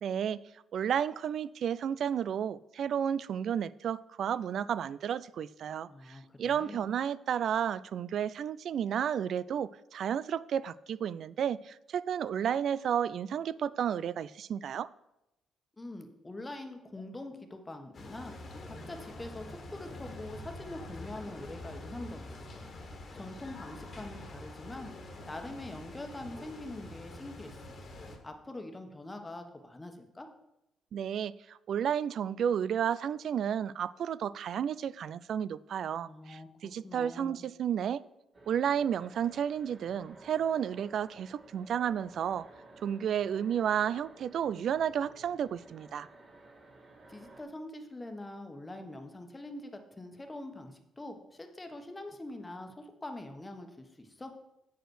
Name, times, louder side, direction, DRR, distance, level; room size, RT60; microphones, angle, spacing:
voice 1, 0.0-0.4 0.7-14.9 30.9-38.0 38.5-42.5 42.8-46.1, right 8 dB, 65° right, 0.3 m, -32 dB
voice 2, 5.9-6.8 15.8-27.8 28.2-30.3 36.0-37.4 47.1-54.3, left 2 dB, 20° left, 1.2 m, -44 dB
sound 1, 17.9-28.2, left 1 dB, 45° left, 1.6 m, -46 dB
sound 2, 38.3-47.4, right 2 dB, 45° right, 2.3 m, -55 dB
7.9 x 5.3 x 6.3 m
cardioid pair, 90°, 0 cm